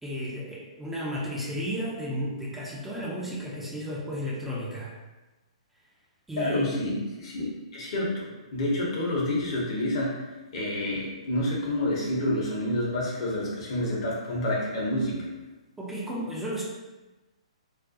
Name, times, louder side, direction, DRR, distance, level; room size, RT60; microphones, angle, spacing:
voice 1, 0.0-4.9 6.3-6.8 15.8-16.6, equal, 5° right, -6 dB, 0.4 m, -33 dB
voice 2, 6.4-10.2 10.5-15.3, left 1 dB, 50° left, -3 dB, 0.7 m, -28 dB
2.3 x 2.1 x 2.6 m, 1.1 s
figure-of-eight pair, 120°, 4 cm